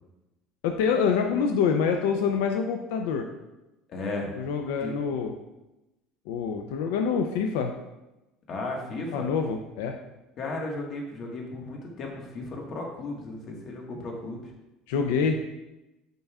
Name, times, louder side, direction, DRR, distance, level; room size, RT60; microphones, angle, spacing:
voice 1, 0.6-3.3 4.4-5.3 6.3-7.7 9.1-10.0 14.9-15.4, left 6 dB, 90° left, 5 dB, 0.5 m, -26 dB
voice 2, 3.9-4.3 4.8-4.9 8.5-9.3 10.4-14.5, left 2 dB, 40° left, 0 dB, 1.5 m, -35 dB
9.1 x 5.4 x 2.4 m, 0.98 s
cardioid pair, 140°, 0 cm